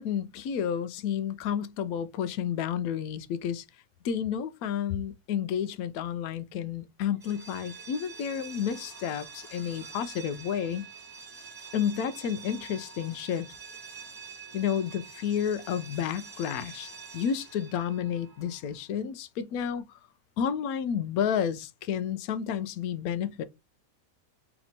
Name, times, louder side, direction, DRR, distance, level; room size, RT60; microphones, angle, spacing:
voice 1, 0.0-3.6 4.0-10.9 11.7-13.5 14.5-19.9 20.4-23.4, left 8 dB, 70° left, 0.9 m, -31 dB
sound 1, 7.1-18.8, right 5 dB, 25° right, 0.5 m, -46 dB
4.2 x 2.9 x 2.7 m
omnidirectional pair, 1.7 m